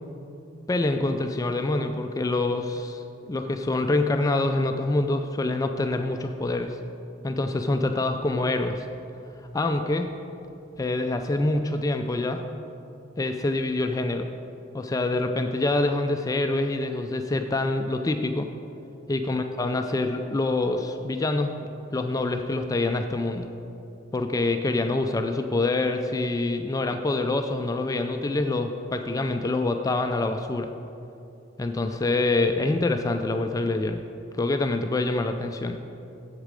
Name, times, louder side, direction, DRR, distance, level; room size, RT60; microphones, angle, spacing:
voice 1, 0.7-6.8 7.2-8.8 9.5-10.1 10.8-12.4 13.2-14.3 14.7-18.5 19.1-23.5 24.1-30.7 31.6-34.0 34.4-35.8, left 2 dB, 20° left, 6 dB, 0.3 m, -26 dB
8.0 x 7.4 x 5.1 m, 2.7 s
head